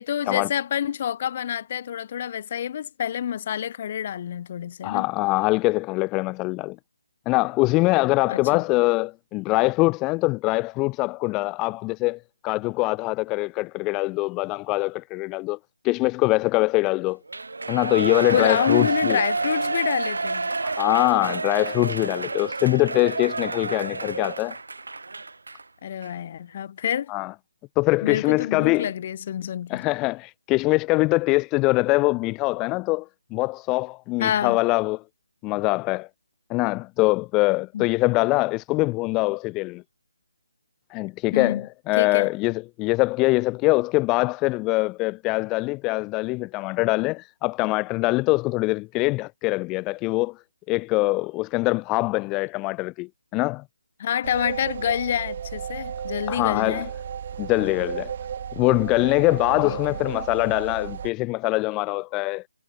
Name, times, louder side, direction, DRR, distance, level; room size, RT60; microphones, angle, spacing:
voice 1, 0.0-5.1 8.3-8.7 18.3-20.5 25.8-27.1 28.0-29.9 34.2-34.6 37.7-37.9 41.3-41.7 42.0-42.3 54.0-56.9 59.6-60.0, left 9 dB, 30° left, 2.8 m, -27 dB
voice 2, 4.8-6.8 7.3-15.6 15.8-17.2 17.7-19.2 20.6-24.6 27.1-27.3 27.8-28.9 29.7-35.0 35.4-36.1 36.5-39.8 40.9-50.3 50.7-53.6 56.3-56.9 57.4-58.1 58.5-62.4, left 23 dB, 15° left, 0.7 m, -23 dB
Shout / Cheering, 17.3-25.6 26.0-26.1, right 3 dB, 80° right, 1.3 m, -29 dB
sound 1, 54.2-61.1, right 8 dB, 35° right, 5.2 m, -34 dB
hypercardioid pair, 170°, 0 cm